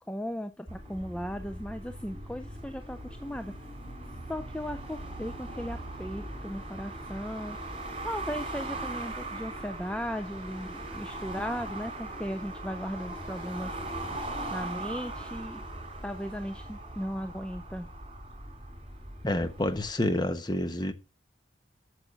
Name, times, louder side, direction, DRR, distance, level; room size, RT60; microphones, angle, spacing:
voice 1, 0.0-3.5 4.3-7.6 8.0-13.8 14.5-15.6 16.0-17.9, equal, 5° left, 0.5 m, -37 dB
sound 1, 0.7-19.9, right 2 dB, 30° right, 4.3 m, -40 dB
voice 2, 19.2-20.9, left 1 dB, 25° left, 1.1 m, -28 dB
8.4 x 6.8 x 6.8 m
head